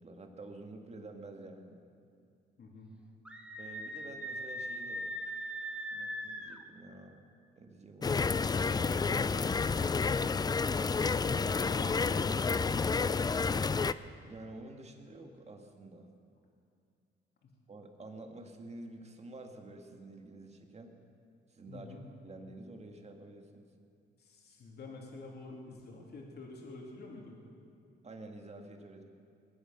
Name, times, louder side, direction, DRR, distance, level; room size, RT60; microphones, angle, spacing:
voice 1, 0.0-1.8 3.6-5.1 5.9-7.2 7.6-8.4 14.2-16.1 17.7-21.0 21.5-23.7 28.0-29.0, right 2 dB, 35° right, 4 dB, 1.9 m, -49 dB
voice 2, 2.6-2.9 10.9-12.8 21.7-22.0 24.2-27.3, left 3 dB, 55° left, -1 dB, 3.0 m, -48 dB
Screaming, 3.2-6.6, equal, 5° right, 1.4 m, -40 dB
sound 1, 8.0-13.9, left 4 dB, 20° left, 0.4 m, -30 dB
21.0 x 9.5 x 6.7 m, 2.4 s
cardioid pair, 90°, 20 cm